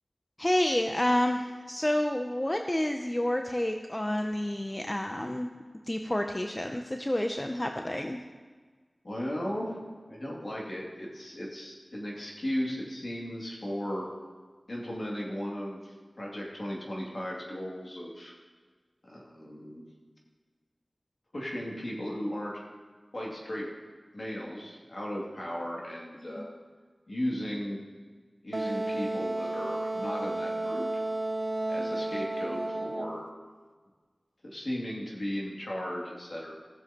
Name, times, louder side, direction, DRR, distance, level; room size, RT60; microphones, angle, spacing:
voice 1, 0.4-5.5 5.9-8.2 26.4-26.5, left 1 dB, 20° left, 4 dB, 0.5 m, -29 dB
voice 2, 9.0-14.1 14.7-18.3 19.0-19.8 21.3-22.7 23.1-23.7 24.1-26.6 27.1-27.8 28.4-30.9 31.7-33.3 34.4-36.5, equal, 55° left, -3 dB, 2.4 m, -36 dB
Wind instrument woodwind instrument, 28.5-33.2, right 2 dB, 40° right, 0.4 m, -32 dB
16.0 x 7.1 x 2.9 m, 1.5 s
wide cardioid pair, 60°, 0 cm